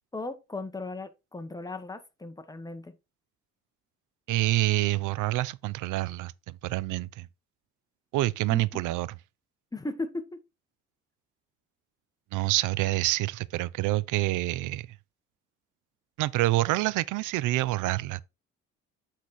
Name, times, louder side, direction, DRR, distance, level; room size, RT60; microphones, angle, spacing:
voice 1, 0.1-3.0 8.5-8.6 9.7-10.4, left 2 dB, 10° left, 1.1 m, -36 dB
voice 2, 4.3-7.3 8.1-9.1 12.3-14.9 16.2-18.2, right 17 dB, 90° right, 0.5 m, -27 dB
8.3 x 4.0 x 4.1 m
cardioid pair, 90°, 30 cm